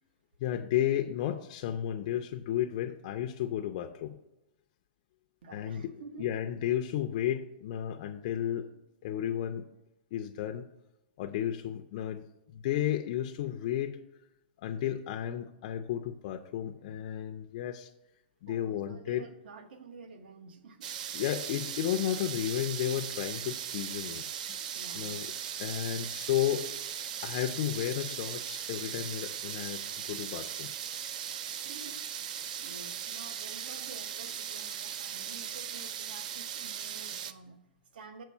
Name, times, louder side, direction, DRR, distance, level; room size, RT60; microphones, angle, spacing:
voice 1, 0.4-4.2 5.5-5.9 6.2-8.7 9.0-9.7 10.1-10.7 11.2-14.0 14.6-17.9 18.4-19.3 21.1-24.6 24.9-25.3 25.6-26.7 27.2-30.7, left 11 dB, 35° left, 5 dB, 0.4 m, -33 dB
voice 2, 5.4-6.4 18.5-20.9 24.7-25.5 31.6-38.2, right 4 dB, 65° right, 8 dB, 0.9 m, -50 dB
sound 1, 20.8-37.3, right 9 dB, 50° right, 0.4 m, -38 dB
7.0 x 4.5 x 5.4 m, 0.90 s
hypercardioid pair, 165°, 6 cm